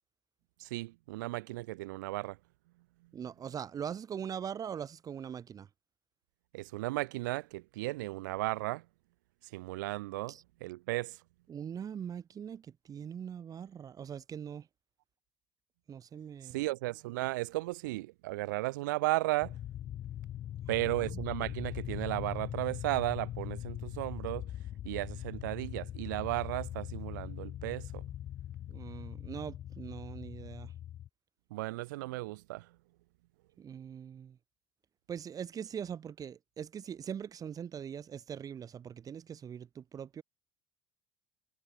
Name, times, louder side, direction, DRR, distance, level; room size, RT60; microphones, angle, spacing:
voice 1, 0.6-2.4 6.5-8.8 9.5-10.4 10.6-11.2 16.5-19.5 20.7-24.5 24.8-28.0 31.5-32.7, right 20 dB, 80° right, 0.8 m, -35 dB
voice 2, 3.1-5.7 10.3-10.4 11.5-14.7 15.9-16.6 20.9-21.2 28.7-30.7 33.6-34.4 35.1-40.2, right 8 dB, 35° right, 1.3 m, -42 dB
sound 1, 19.4-31.1, left 12 dB, 50° left, 1.7 m, -41 dB
hypercardioid pair, 80°, 10 cm